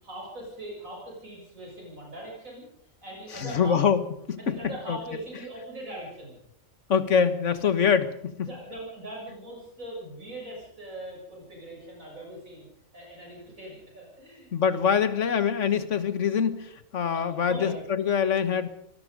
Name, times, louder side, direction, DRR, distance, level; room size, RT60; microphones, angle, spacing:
voice 1, 0.0-2.7 3.0-3.8 4.4-6.4 8.4-12.7 12.9-14.5 17.1-17.9, right 1 dB, 85° right, -2 dB, 7.6 m, -41 dB
voice 2, 3.4-4.0 4.3-4.6 4.9-5.0 6.9-8.5 14.5-18.7, left 7 dB, 65° left, 11 dB, 1.7 m, -24 dB
25.5 x 20.0 x 5.2 m, 0.76 s
omnidirectional pair, 1.4 m